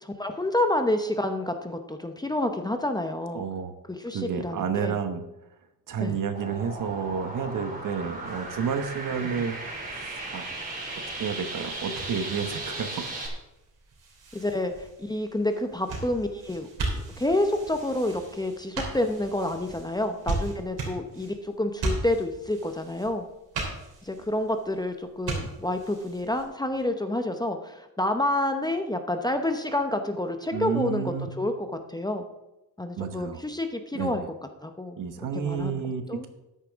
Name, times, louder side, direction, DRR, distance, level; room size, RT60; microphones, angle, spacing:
voice 1, 0.0-3.5 3.9-5.0 6.0-6.2 14.3-16.7 16.9-23.3 24.0-32.3 32.8-34.2 34.6-35.0 35.4-35.8 36.1-36.3, left 1 dB, 10° left, 6 dB, 0.7 m, -28 dB
voice 2, 3.3-3.7 4.1-5.2 5.9-9.6 9.8-10.6 11.2-13.0 30.5-31.3 33.0-33.4 33.9-34.3 35.0-36.3, right 6 dB, 60° right, 8 dB, 1.2 m, -30 dB
sound 1, 6.3-13.3, right 2 dB, 25° right, 2.8 m, -36 dB
sound 2, 8.2-26.4, right 2 dB, 80° right, 3.7 m, -38 dB
13.5 x 9.9 x 3.6 m, 0.96 s
cardioid pair, 135°, 36 cm